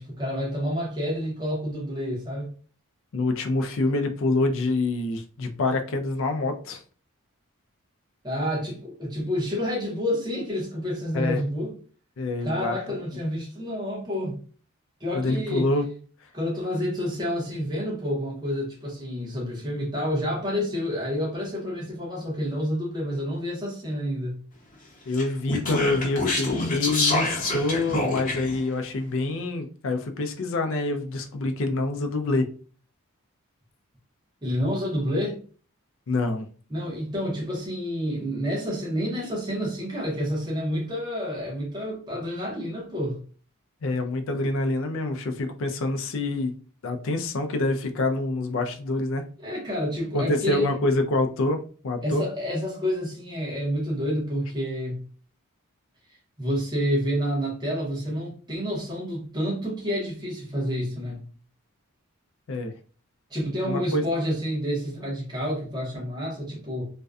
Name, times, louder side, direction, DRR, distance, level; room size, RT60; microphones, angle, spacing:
voice 1, 0.0-2.5 8.2-11.7 12.4-14.4 15.0-15.6 16.3-24.4 34.4-35.4 36.7-43.2 49.4-50.7 52.0-55.0 56.4-61.3 63.3-66.8, equal, 20° right, 0.8 m, -29 dB
voice 2, 3.1-6.8 11.1-11.4 12.2-13.0 15.1-15.9 25.1-32.5 36.1-36.5 43.8-46.5 46.8-49.2 50.1-51.6 51.8-52.2 62.5-62.7 63.6-64.1, left 2 dB, 60° left, 0.4 m, -26 dB
Speech, 25.1-28.6, left 2 dB, 35° left, 0.8 m, -26 dB
2.5 x 2.2 x 2.3 m
head